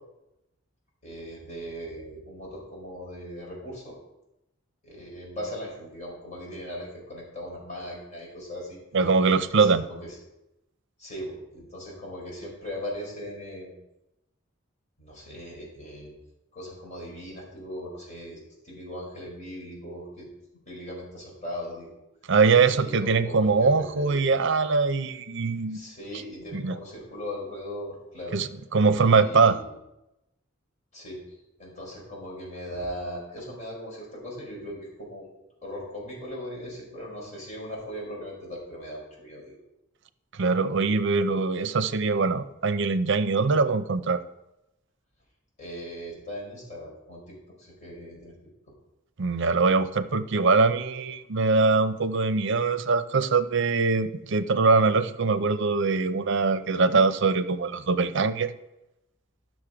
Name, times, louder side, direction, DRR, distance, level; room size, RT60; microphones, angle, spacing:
voice 1, 1.0-4.0 4.8-8.8 9.5-10.2 11.0-13.8 15.0-16.1 16.5-18.4 18.6-20.3 20.7-21.9 22.7-24.2 25.7-28.4 28.9-29.7 30.9-35.3 35.6-39.6 45.6-48.3, equal, 35° left, -3 dB, 4.2 m, -39 dB
voice 2, 8.9-9.8 22.3-25.8 26.5-26.8 28.3-29.6 40.3-44.2 49.2-58.5, right 4 dB, 60° right, 12 dB, 0.6 m, -22 dB
12.5 x 6.3 x 5.0 m, 0.92 s
head